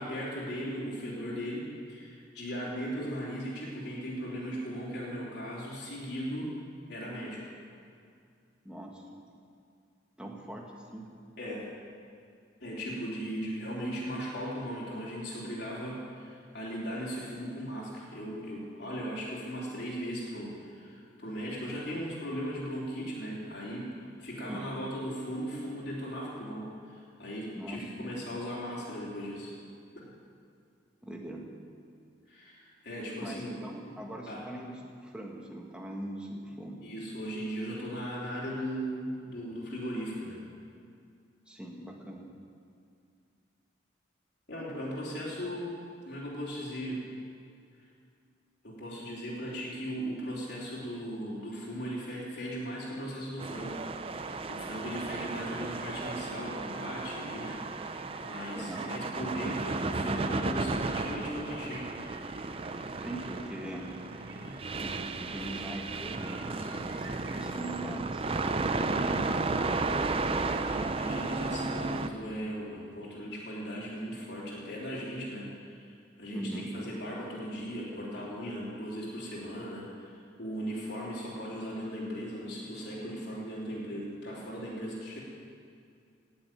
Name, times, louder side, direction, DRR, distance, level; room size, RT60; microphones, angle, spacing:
voice 1, 0.0-6.5 6.9-7.4 11.4-11.7 12.6-23.9 24.2-29.5 30.0-30.1 32.3-33.6 34.3-34.4 36.8-40.4 44.5-47.0 48.6-61.9 64.4-64.6 66.4-66.7 68.9-69.2 70.5-85.2, equal, 60° left, -6 dB, 3.4 m, -38 dB
voice 2, 8.7-9.1 10.2-11.2 24.4-24.7 27.6-28.2 31.0-31.5 33.2-36.8 41.5-42.3 58.5-58.9 63.0-64.0 64.8-70.7 76.3-76.7, right 1 dB, 5° right, -1 dB, 1.6 m, -42 dB
sound 1, 53.4-72.1, right 3 dB, 30° right, 0.5 m, -34 dB
sound 2, 54.5-67.4, right 2 dB, 85° right, 3.8 m, -54 dB
17.0 x 7.1 x 9.2 m, 2.3 s
head